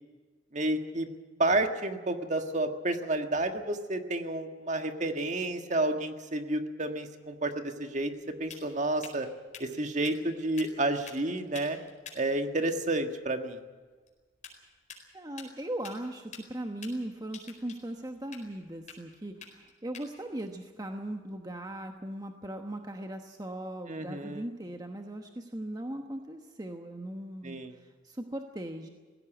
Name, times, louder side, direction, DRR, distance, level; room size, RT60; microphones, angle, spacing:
voice 1, 0.5-1.1 1.4-8.1 8.4-9.3 9.6-11.8 12.2-13.6 23.9-24.5 27.4-27.8, right 2 dB, 40° right, 6 dB, 1.6 m, -30 dB
sound 1, 8.0-21.9, left 5 dB, 40° left, 4.6 m, -52 dB
voice 2, 15.1-28.9, right 1 dB, 20° right, 4 dB, 1.1 m, -39 dB
19.0 x 16.5 x 9.0 m, 1.4 s
head